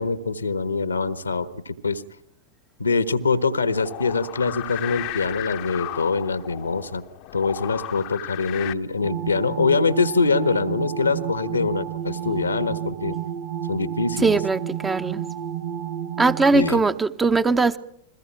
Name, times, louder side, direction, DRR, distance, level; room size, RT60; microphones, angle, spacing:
voice 1, 0.0-2.0 2.8-7.0 7.3-13.2 13.7-14.3 16.5-16.8, left 4 dB, 80° left, 1.4 m, -24 dB
sound 1, 3.7-8.7, left 20 dB, 45° left, 0.9 m, -35 dB
sound 2, 9.0-16.7, right 9 dB, 40° right, 2.0 m, -31 dB
voice 2, 14.2-15.2 16.2-17.8, right 3 dB, 15° right, 1.0 m, -20 dB
29.0 x 22.0 x 5.9 m
figure-of-eight pair, 90°, 0 cm